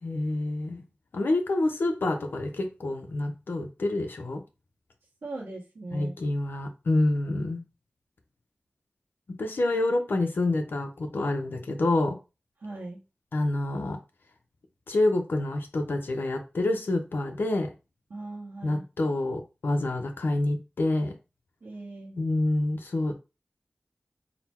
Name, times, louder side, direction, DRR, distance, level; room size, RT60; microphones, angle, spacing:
voice 1, 0.0-0.8 1.1-4.4 5.9-7.6 9.4-12.2 13.3-14.0 14.9-17.7 18.6-21.1 22.2-23.1, left 2 dB, 80° left, 0.8 m, -27 dB
voice 2, 5.2-6.1 12.6-13.0 18.1-19.1 21.6-22.2, right 2 dB, 90° right, 1.2 m, -39 dB
4.1 x 2.2 x 4.2 m
wide cardioid pair, 65°, 4 cm